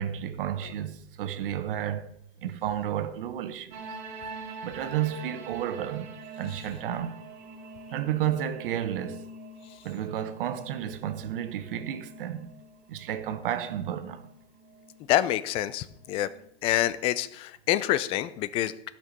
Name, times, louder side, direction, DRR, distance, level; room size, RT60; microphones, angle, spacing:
voice 1, 0.0-3.8 4.6-7.2 7.9-9.2 9.8-12.5 12.9-14.3, right 10 dB, 55° right, 1.2 m, -32 dB
sound 1, 3.7-16.4, right 3 dB, 35° right, 2.3 m, -45 dB
voice 2, 15.1-16.3 16.6-18.9, left 13 dB, 20° left, 0.4 m, -27 dB
12.5 x 6.0 x 6.7 m
hypercardioid pair, 130°, 32 cm